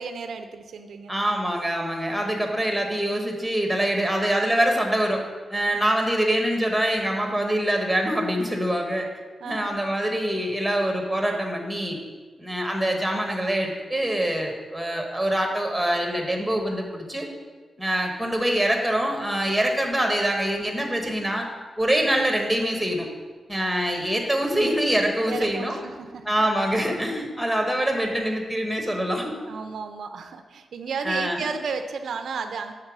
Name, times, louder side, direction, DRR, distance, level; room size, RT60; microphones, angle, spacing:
voice 1, 0.0-1.1 9.4-9.8 25.3-26.5 29.5-32.7, right 5 dB, 75° right, 7 dB, 0.4 m, -33 dB
voice 2, 1.1-5.2 5.5-9.1 9.4-12.0 12.4-17.3 17.8-21.5 21.8-23.1 23.5-25.8 26.2-29.3 31.0-31.5, right 1 dB, ahead, 2 dB, 1.0 m, -24 dB
6.5 x 3.9 x 6.0 m, 1.4 s
wide cardioid pair, 110°, 0 cm